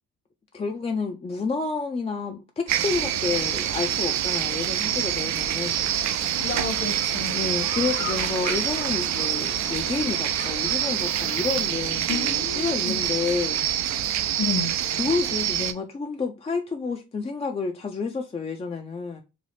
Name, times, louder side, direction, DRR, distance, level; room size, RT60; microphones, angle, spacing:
voice 1, 0.5-5.9 7.3-13.7 15.0-19.2, left 4 dB, 20° left, 0.4 m, -29 dB
sound 1, 2.7-15.7, right 11 dB, 70° right, 0.4 m, -26 dB
sound 2, 6.1-11.7, left 5 dB, 80° left, 1.2 m, -40 dB
voice 2, 6.3-7.4 12.1-13.0 14.4-14.7, left 4 dB, 45° left, 1.0 m, -31 dB
3.2 x 2.0 x 3.8 m
cardioid pair, 90°, 30 cm